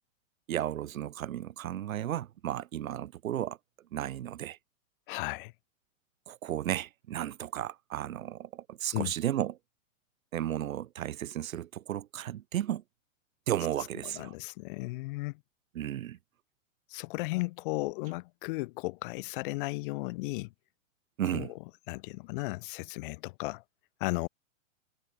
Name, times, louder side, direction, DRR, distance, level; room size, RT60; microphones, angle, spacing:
voice 1, 0.5-3.6 3.9-4.6 6.3-9.6 10.3-12.8 13.5-14.3 15.7-16.2 21.2-21.5, right 12 dB, 85° right, 1.1 m, -34 dB
voice 2, 5.1-5.5 8.9-9.1 14.0-15.4 16.9-20.5 21.2-21.5 21.9-23.6 24.0-24.3, left 23 dB, 40° left, 1.2 m, -35 dB
hypercardioid pair, 145°, 40 cm